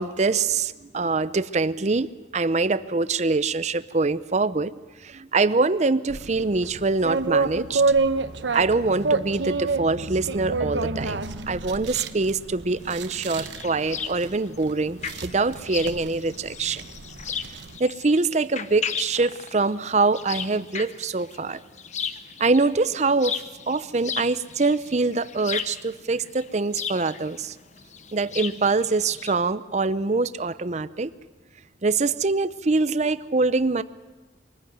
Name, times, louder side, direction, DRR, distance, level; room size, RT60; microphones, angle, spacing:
voice 1, 0.0-4.7 5.0-7.8 8.5-11.2 11.5-16.9 17.8-21.6 22.4-27.5 28.1-31.1 31.8-33.8, right 3 dB, 40° right, 15 dB, 0.6 m, -24 dB
sound 1, 6.1-17.8, right 3 dB, 85° right, 1.0 m, -29 dB
sound 2, 12.7-29.3, left 7 dB, 40° left, 0.9 m, -36 dB
23.5 x 14.5 x 9.4 m, 1.2 s
head